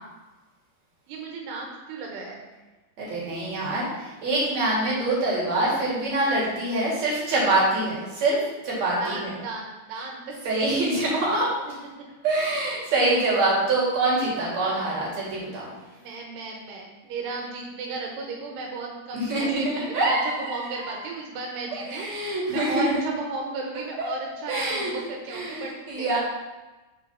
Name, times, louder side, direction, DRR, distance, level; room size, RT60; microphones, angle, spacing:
voice 1, 1.1-2.5 9.0-10.4 14.6-15.0 15.9-22.1 22.5-26.2, right 3 dB, 85° right, 0 dB, 3.1 m, -35 dB
voice 2, 3.0-8.4 8.6-9.3 10.4-11.5 12.2-15.7 19.1-21.0 21.7-23.0 24.0-24.1 24.5-24.9 25.3-26.2, right 2 dB, 45° right, -5 dB, 3.1 m, -25 dB
7.3 x 4.4 x 5.6 m, 1.1 s
omnidirectional pair, 4.7 m